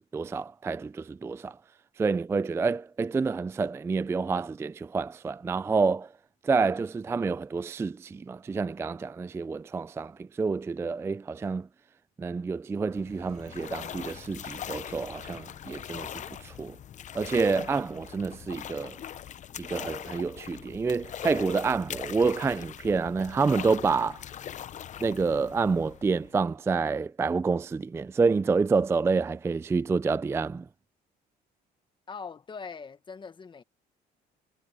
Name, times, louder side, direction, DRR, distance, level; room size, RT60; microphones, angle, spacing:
voice 1, 0.0-1.6 2.0-6.1 6.4-11.7 12.2-16.8 17.1-19.0 19.6-24.2 25.0-30.7, right 4 dB, 15° right, 0.3 m, -28 dB
sound 1, 12.8-26.5, left 10 dB, 45° left, 0.7 m, -41 dB
sound 2, 12.8-16.1, right 20 dB, 90° right, 6.0 m, -67 dB
voice 2, 32.1-33.6, left 5 dB, 30° left, 1.3 m, -41 dB
cardioid pair, 110°, 17 cm